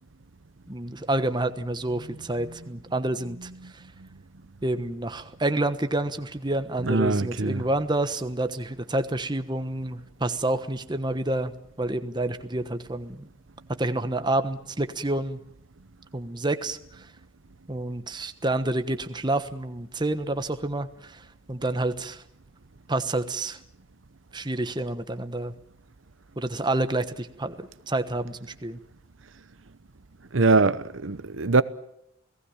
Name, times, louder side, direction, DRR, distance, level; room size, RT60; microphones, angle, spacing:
voice 1, 0.7-3.8 4.6-11.5 11.8-13.3 13.8-15.4 16.1-17.1 17.7-22.2 22.9-23.6 24.3-25.5 26.4-27.5 27.9-28.8, right 2 dB, 20° right, 1.2 m, -28 dB
voice 2, 6.8-7.7 30.3-31.6, right 3 dB, 70° right, 0.9 m, -22 dB
29.0 x 18.5 x 7.2 m
head